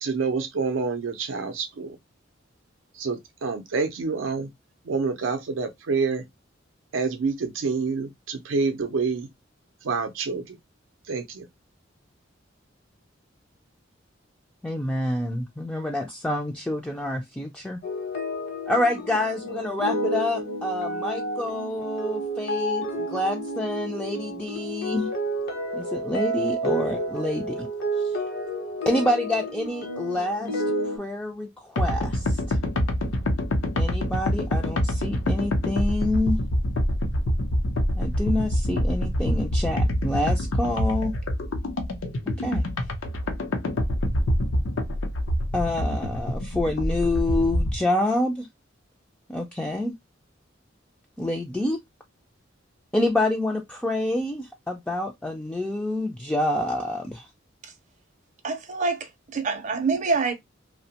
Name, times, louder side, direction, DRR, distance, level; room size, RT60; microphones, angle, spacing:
voice 1, 0.0-2.0 2.9-4.5 4.9-6.2 6.9-9.3 9.8-10.6 11.1-11.5, right 4 dB, 85° right, 0.4 m, -27 dB
voice 2, 14.6-17.8 18.7-25.1 25.7-27.7 28.9-32.6 33.7-36.4 38.0-41.1 42.3-42.7 45.5-48.5 49.3-50.0 51.2-51.8 52.9-57.3, left 1 dB, 5° left, 0.3 m, -27 dB
sound 1, 17.8-31.0, right 1 dB, 55° left, 0.9 m, -30 dB
sound 2, 31.8-47.8, equal, 85° left, 0.6 m, -25 dB
voice 3, 58.4-60.3, right 4 dB, 40° right, 0.5 m, -26 dB
2.7 x 2.1 x 2.7 m
head